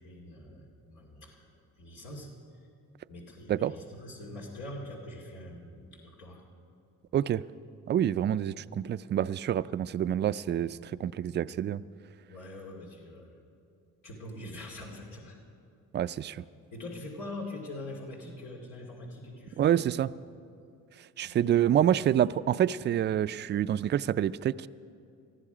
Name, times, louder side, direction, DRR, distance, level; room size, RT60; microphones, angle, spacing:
voice 1, 0.0-2.3 3.1-6.4 12.3-13.3 14.0-15.4 16.7-19.8 20.0-20.1 21.2-21.9, left 1 dB, 85° left, -2 dB, 2.4 m, -44 dB
voice 2, 7.9-11.8 15.9-16.4 19.6-20.1 21.2-24.7, right 10 dB, 35° right, 15 dB, 0.4 m, -27 dB
19.0 x 14.0 x 5.0 m, 2.6 s
cardioid pair, 90°, 30 cm